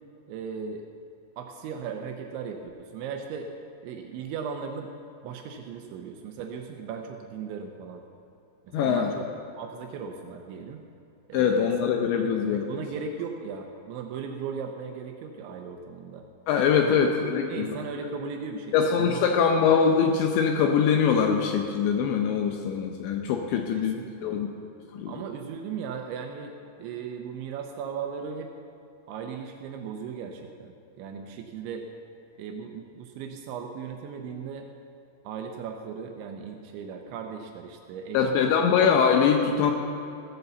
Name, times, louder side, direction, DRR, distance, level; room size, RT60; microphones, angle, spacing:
voice 1, 0.3-0.9 1.4-3.5 3.8-4.9 5.2-8.0 8.8-9.3 9.6-10.8 11.3-11.7 12.2-16.2 16.8-17.0 17.3-19.4 23.5-24.4 25.1-28.5 29.1-31.9 32.4-34.7 35.2-38.7, right 6 dB, 80° right, 4 dB, 2.8 m, -37 dB
voice 2, 8.7-9.2 11.3-12.6 16.5-17.8 18.7-24.5 24.9-25.1 38.1-39.7, left 6 dB, 80° left, 3 dB, 2.7 m, -23 dB
16.0 x 8.1 x 6.9 m, 2.9 s
omnidirectional pair, 5.8 m